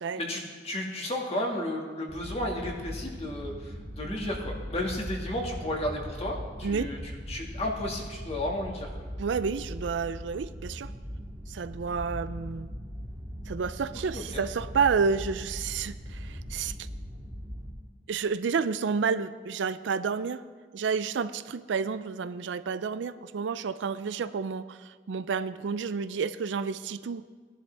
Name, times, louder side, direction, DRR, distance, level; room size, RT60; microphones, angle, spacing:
voice 1, 0.1-7.0 7.3-8.9 14.1-14.2, left 1 dB, 35° left, 0 dB, 1.9 m, -33 dB
sound 1, 2.1-17.7, equal, 5° right, 2.3 m, -39 dB
voice 2, 9.2-10.9 11.5-12.7 13.5-16.9 18.1-20.4 20.7-27.2, right 5 dB, 75° right, 14 dB, 0.4 m, -30 dB
17.5 x 11.0 x 3.4 m, 1.5 s
head